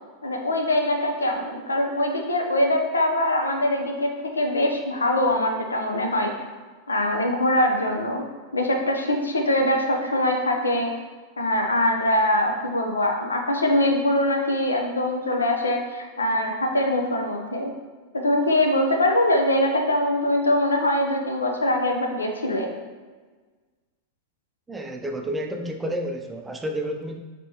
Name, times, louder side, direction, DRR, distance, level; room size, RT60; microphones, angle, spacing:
voice 1, 0.2-6.3 6.9-8.2 8.5-10.9 11.4-17.7 18.1-22.7, left 1 dB, 75° left, 3 dB, 0.6 m, -23 dB
voice 2, 24.7-27.2, right 1 dB, 10° right, 3 dB, 0.5 m, -30 dB
5.2 x 3.4 x 2.8 m, 1.4 s
figure-of-eight pair, 90°, 0 cm